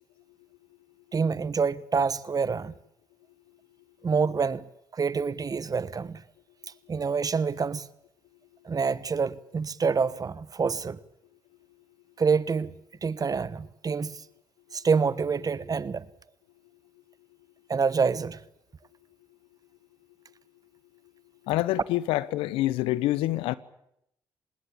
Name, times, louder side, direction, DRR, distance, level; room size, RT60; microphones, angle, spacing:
voice 1, 1.1-2.7 4.0-4.6 4.9-6.2 6.9-7.9 8.6-11.0 12.2-14.2 14.7-16.1 17.7-18.4, right 5 dB, 40° right, 1.3 m, -27 dB
voice 2, 21.5-23.5, left 16 dB, 80° left, 1.0 m, -26 dB
26.0 x 20.5 x 8.6 m
hypercardioid pair, 45°, 9 cm